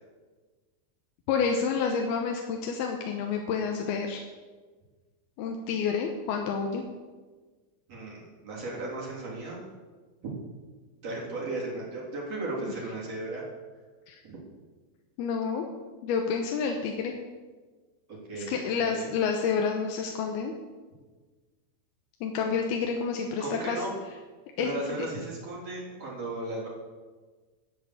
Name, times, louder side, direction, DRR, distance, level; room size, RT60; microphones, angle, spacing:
voice 1, 1.3-4.2 5.4-6.8 14.1-14.2 15.2-15.6 16.0-17.1 18.3-20.5 22.2-23.8 24.6-24.7 25.0-25.1, left 6 dB, 90° left, 2 dB, 2.9 m, -29 dB
voice 2, 7.9-9.6 10.2-10.3 11.0-13.4 14.2-14.4 18.1-19.1 23.4-23.9 24.6-26.7, right 2 dB, 40° right, -5 dB, 4.4 m, -35 dB
12.5 x 8.5 x 7.9 m, 1.4 s
omnidirectional pair, 4.4 m